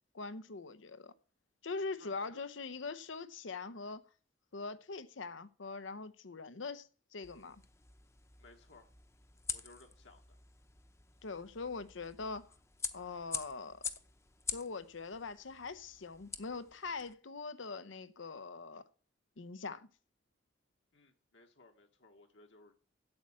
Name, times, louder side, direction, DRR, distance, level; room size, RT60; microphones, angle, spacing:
voice 1, 0.1-1.1 1.6-4.1 4.5-7.6 11.2-12.5 12.9-13.8 14.5-18.8 19.4-19.9, left 4 dB, 90° left, 0.8 m, -42 dB
voice 2, 2.0-2.5 8.4-8.9 9.5-10.4 20.9-22.7, left 2 dB, 70° left, 1.5 m, -60 dB
sound 1, 7.2-17.1, left 5 dB, 15° left, 0.7 m, -46 dB
8.8 x 7.5 x 8.7 m
head